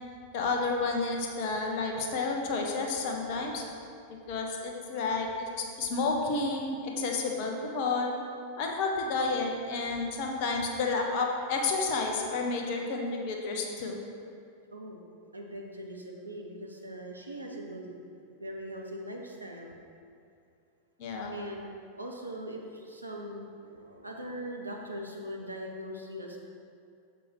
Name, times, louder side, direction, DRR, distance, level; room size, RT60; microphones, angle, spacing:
voice 1, 0.3-3.6 4.3-8.1 8.6-14.0 21.0-21.3, left 3 dB, 45° left, 1 dB, 1.1 m, -30 dB
voice 2, 15.3-17.9 18.4-19.7 21.3-21.7 22.0-26.4, equal, 80° right, 0 dB, 0.9 m, -41 dB
7.4 x 6.1 x 4.4 m, 2.4 s
figure-of-eight pair, 90°, 0 cm